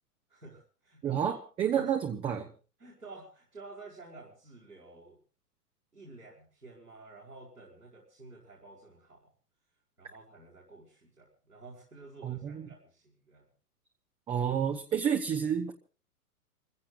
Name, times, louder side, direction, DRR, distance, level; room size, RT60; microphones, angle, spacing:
voice 1, 0.3-1.4 1.7-1.8 2.8-5.2 5.9-9.3 10.0-13.5, right 3 dB, 85° right, -3 dB, 5.7 m, -51 dB
voice 2, 1.0-2.5 12.2-12.7 14.3-15.7, right 8 dB, 10° right, 4 dB, 0.9 m, -30 dB
30.0 x 16.0 x 2.5 m, 0.37 s
figure-of-eight pair, 115°, 46 cm